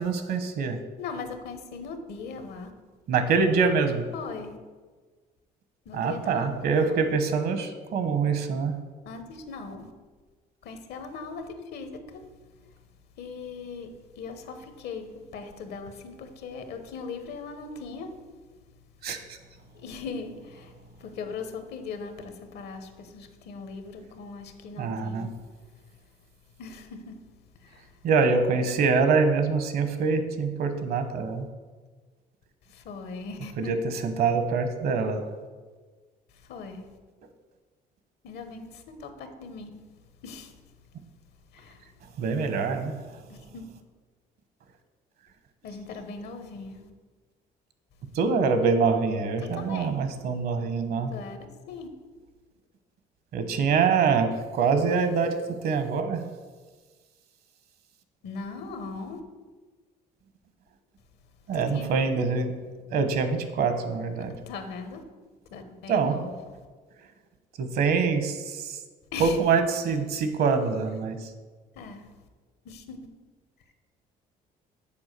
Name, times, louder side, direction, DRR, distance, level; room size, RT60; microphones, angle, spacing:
voice 1, 0.0-0.8 3.1-4.0 5.9-8.7 19.0-19.2 24.8-25.3 28.0-31.4 33.6-33.8 34.0-35.3 42.2-43.0 48.1-51.1 53.3-55.4 55.6-56.2 61.5-62.5 62.9-64.3 65.9-66.1 67.6-68.8 69.2-71.2, right 5 dB, 65° right, 8 dB, 1.1 m, -25 dB
voice 2, 1.0-2.7 3.3-3.4 4.1-4.6 5.8-6.5 6.9-7.0 9.0-9.9 10.6-12.3 12.5-12.8 13.2-18.2 19.7-25.3 25.9-26.0 26.6-27.2 27.6-28.0 32.6-33.7 36.3-36.9 38.2-39.8 40.2-40.5 41.5-41.9 43.3-43.6 45.6-46.8 49.4-50.1 51.1-51.9 58.2-59.2 61.5-61.9 64.2-65.0 65.5-66.5 69.1-69.4 71.7-72.1 72.6-73.1 73.7-73.8, left 4 dB, 75° left, 8 dB, 1.1 m, -39 dB
7.1 x 4.6 x 6.7 m, 1.4 s
cardioid pair, 110°, 17 cm